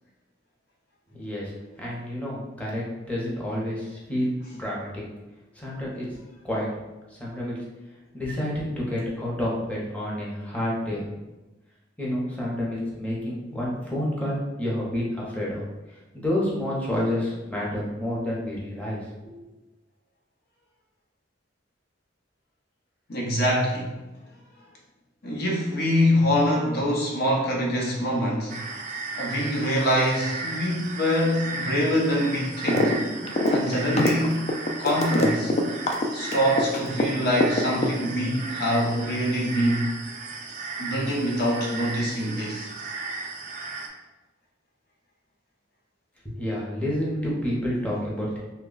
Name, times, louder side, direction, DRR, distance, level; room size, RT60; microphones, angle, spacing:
voice 1, 1.1-1.5 1.8-5.0 5.6-6.1 6.4-6.7 7.1-7.5 8.1-11.0 12.0-15.6 16.1-19.0 19.2-19.3 46.2-48.4, left 1 dB, 5° left, -5 dB, 0.7 m, -29 dB
voice 2, 23.1-24.0 25.2-28.6 29.2-33.0 33.5-35.5 36.1-40.0 40.8-42.7, equal, 55° left, -2 dB, 0.8 m, -24 dB
sound 1, 28.5-43.9, right 3 dB, 40° right, 0.4 m, -35 dB
sound 2, 32.7-33.0 33.2-37.1 37.4-38.3, left 2 dB, 35° left, 0.3 m, -23 dB
3.0 x 2.2 x 3.8 m, 1.1 s
head